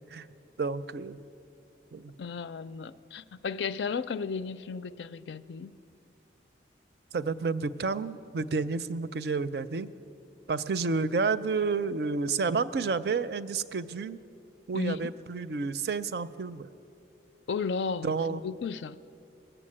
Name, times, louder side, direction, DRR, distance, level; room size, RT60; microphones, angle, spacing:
voice 1, 0.6-1.2 1.9-2.1 7.1-9.9 10.5-14.2 14.7-16.7 18.0-18.4, right 4 dB, 65° right, 14 dB, 0.4 m, -30 dB
voice 2, 2.2-5.8 14.7-15.0 17.5-19.0, left 5 dB, 80° left, 14 dB, 0.4 m, -34 dB
20.5 x 7.0 x 8.6 m, 2.7 s
head